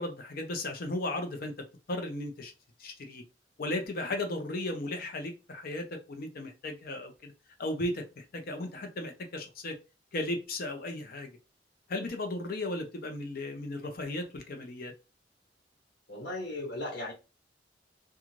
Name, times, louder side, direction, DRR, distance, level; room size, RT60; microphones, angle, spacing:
voice 1, 0.0-1.5 1.9-2.5 2.8-3.2 3.6-7.3 7.6-9.8 10.1-11.3 11.9-14.9, left 1 dB, 55° left, 0.6 m, -35 dB
voice 2, 16.1-17.1, left 1 dB, 85° left, 1.3 m, -36 dB
2.5 x 2.3 x 3.0 m
head